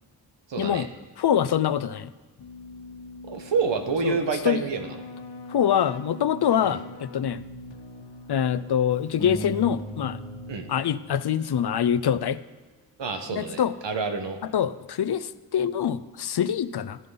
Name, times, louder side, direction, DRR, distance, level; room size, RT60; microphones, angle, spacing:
voice 1, 0.5-0.9 3.3-4.9 6.6-6.8 10.5-10.7 13.0-14.4, right 5 dB, 90° right, 6 dB, 1.3 m, -28 dB
voice 2, 1.2-2.1 4.0-4.7 5.5-7.4 8.3-10.2 10.7-12.4 13.4-13.7 14.5-17.0, left 9 dB, 65° left, 15 dB, 0.6 m, -25 dB
Keyboard (musical), 2.4-11.1, left 2 dB, 85° left, 1.3 m, -43 dB
sound 1, 9.2-11.8, left 1 dB, 10° left, 1.2 m, -39 dB
13.5 x 9.3 x 3.9 m, 1.3 s
cardioid pair, 60°, 43 cm